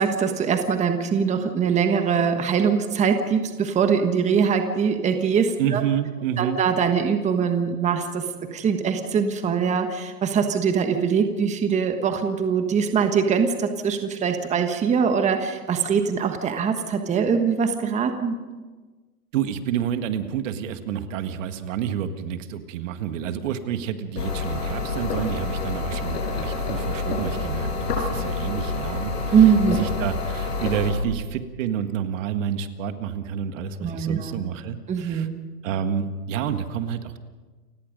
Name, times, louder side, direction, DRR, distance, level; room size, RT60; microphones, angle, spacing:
voice 1, 0.0-5.8 6.4-18.4 29.3-29.8 33.8-34.3 34.9-35.4, right 6 dB, 15° right, 6 dB, 1.3 m, -22 dB
voice 2, 5.6-6.6 19.3-29.4 29.7-35.3 35.6-37.2, right 8 dB, 50° right, 9 dB, 1.8 m, -29 dB
sound 1, 24.1-30.9, left 3 dB, 85° left, 6.8 m, -28 dB
29.5 x 17.0 x 5.3 m, 1.3 s
hypercardioid pair, 130°, 47 cm